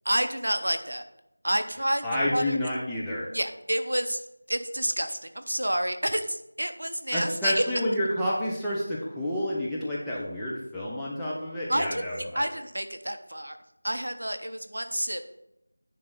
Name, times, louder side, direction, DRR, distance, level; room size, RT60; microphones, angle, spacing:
voice 1, 0.0-1.0 1.4-2.0 2.3-2.6 3.3-4.2 4.5-7.6 11.7-13.6 13.8-15.3, right 1 dB, 65° right, 8 dB, 0.7 m, -29 dB
voice 2, 2.0-3.3 7.1-12.4, left 1 dB, ahead, -12 dB, 0.6 m, -29 dB
9.9 x 3.3 x 4.0 m, 0.84 s
figure-of-eight pair, 170°, 0 cm